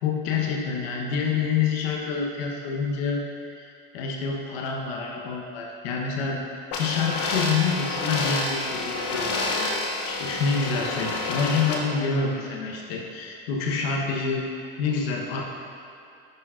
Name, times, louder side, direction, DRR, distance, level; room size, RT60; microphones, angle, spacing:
voice 1, 0.0-3.2 3.5-3.7 3.9-6.4 6.8-9.8 10.0-14.5 14.8-15.4, left 5 dB, 85° left, -1 dB, 1.0 m, -27 dB
sound 1, 6.7-11.7, left 3 dB, 50° left, 1.1 m, -29 dB
11.5 x 4.7 x 2.5 m, 2.7 s
supercardioid pair, 125°, 30 cm